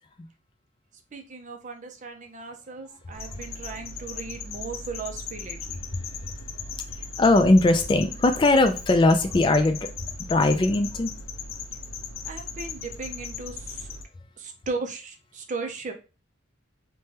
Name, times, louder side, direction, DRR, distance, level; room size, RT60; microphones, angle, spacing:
voice 1, 1.1-5.8 12.2-13.9 14.4-15.9, right 4 dB, 40° right, 5 dB, 0.5 m, -36 dB
sound 1, 3.1-14.0, left 4 dB, 85° left, 0.5 m, -37 dB
voice 2, 7.2-9.8 10.3-11.1, left 2 dB, 25° left, 7 dB, 0.3 m, -19 dB
3.1 x 2.2 x 2.8 m, 0.33 s
head